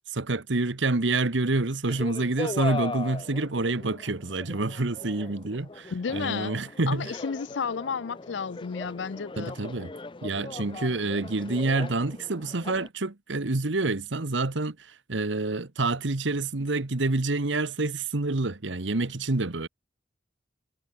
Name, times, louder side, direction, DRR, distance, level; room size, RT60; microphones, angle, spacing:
voice 1, 0.1-7.1 9.4-9.9 10.2-19.7, right 2 dB, 75° right, 1.3 m, -28 dB
sound 1, 1.9-12.9, left 3 dB, 25° left, 0.5 m, -39 dB
voice 2, 5.9-6.5 6.9-9.5, left 6 dB, 70° left, 0.5 m, -32 dB
head